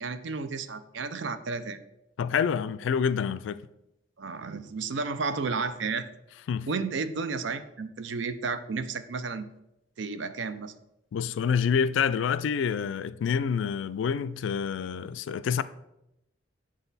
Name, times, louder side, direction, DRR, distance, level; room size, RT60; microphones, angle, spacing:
voice 1, 0.0-1.8 4.2-6.1 6.7-9.4 10.0-10.7, right 4 dB, 75° right, 0.5 m, -32 dB
voice 2, 2.2-3.6 6.5-6.7 11.1-15.6, left 7 dB, 80° left, 0.3 m, -27 dB
7.3 x 3.9 x 4.0 m
head